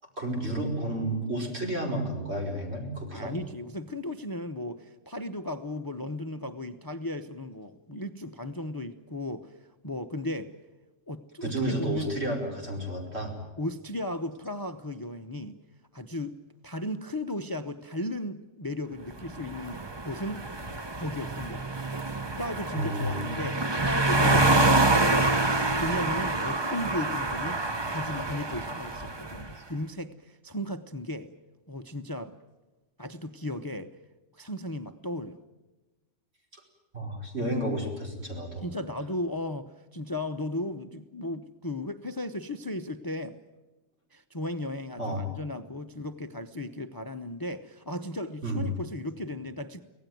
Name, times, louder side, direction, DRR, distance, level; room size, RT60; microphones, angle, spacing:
voice 1, 0.2-3.4 11.4-13.3 22.8-23.3 24.2-24.4 36.5-36.6 36.9-38.7 45.0-45.2 48.4-48.7, right 1 dB, 60° right, 0 dB, 5.3 m, -31 dB
voice 2, 3.1-9.5 9.8-10.5 11.1-12.2 13.6-15.6 15.9-16.3 16.6-20.4 21.0-22.0 22.3-25.5 25.8-27.6 27.9-31.3 31.7-32.3 33.0-33.9 34.3-35.4 38.6-43.4 44.1-49.8, left 1 dB, 20° left, 10 dB, 0.7 m, -35 dB
sound 1, 19.2-29.5, right 2 dB, 25° right, 0.9 m, -27 dB
25.0 x 17.5 x 9.3 m, 1.1 s
omnidirectional pair, 1.2 m